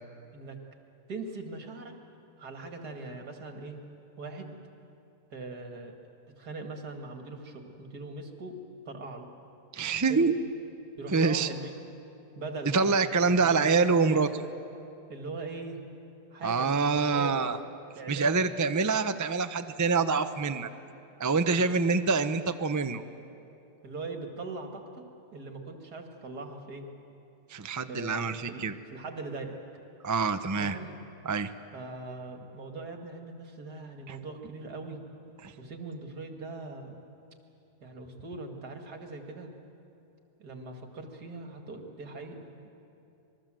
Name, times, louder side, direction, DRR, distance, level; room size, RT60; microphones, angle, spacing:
voice 1, 1.1-1.9 2.4-3.8 4.2-4.6 5.3-5.9 6.4-8.6 8.9-9.3 10.1-10.3 11.0-11.7 12.3-13.0 13.2-14.2 15.1-15.8 16.3-17.5 18.0-18.5 21.4-21.7 23.8-25.0 25.3-26.9 27.9-29.6 30.6-31.0 31.7-35.0 35.6-37.0 37.8-39.5 40.4-42.7, right 3 dB, 75° right, 4 dB, 2.6 m, -41 dB
voice 2, 9.7-10.3 11.1-11.5 12.7-14.3 16.4-17.6 18.1-20.7 21.2-23.0 27.5-28.7 30.0-30.8 31.2-31.5 34.1-34.2 35.4-35.5, right 4 dB, 25° right, 9 dB, 0.4 m, -26 dB
26.0 x 21.0 x 7.7 m, 2.9 s
omnidirectional pair, 1.7 m